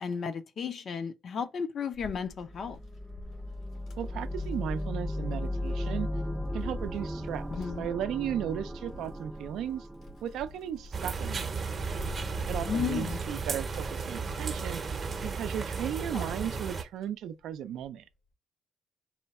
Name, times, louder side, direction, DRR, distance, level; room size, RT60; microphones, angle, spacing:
voice 1, 0.0-2.8 7.5-7.9 12.7-13.2 16.1-16.3, left 6 dB, 55° left, 0.5 m, -34 dB
Wind, 1.9-16.0 16.5-18.0, left 2 dB, 80° left, 1.9 m, -48 dB
sound 1, 2.3-11.2, left 1 dB, 5° right, 0.4 m, -36 dB
voice 2, 4.0-6.1 6.5-7.5 7.8-9.9 10.2-11.5 12.5-14.8 15.2-18.0, right 10 dB, 80° right, 0.4 m, -35 dB
sound 2, 10.9-16.8, right 5 dB, 40° right, 0.7 m, -34 dB
4.2 x 2.3 x 4.0 m
cardioid pair, 90°, 0 cm